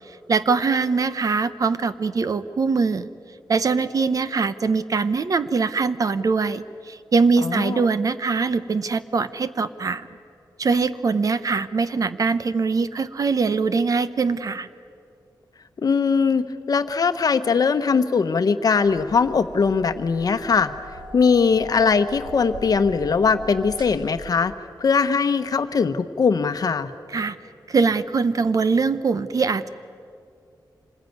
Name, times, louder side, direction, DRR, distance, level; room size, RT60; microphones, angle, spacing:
voice 1, 0.1-3.1 3.5-10.1 10.6-14.7 27.1-27.4 27.7-29.7, right 4 dB, 50° right, 13 dB, 0.8 m, -22 dB
voice 2, 7.4-7.8 15.8-20.7 21.1-24.5 24.8-26.9, left 5 dB, 55° left, 10 dB, 1.0 m, -20 dB
sound 1, 18.8-24.3, equal, 80° right, 3.5 m, -40 dB
26.5 x 20.5 x 9.4 m, 2.4 s
wide cardioid pair, 175°, 8 cm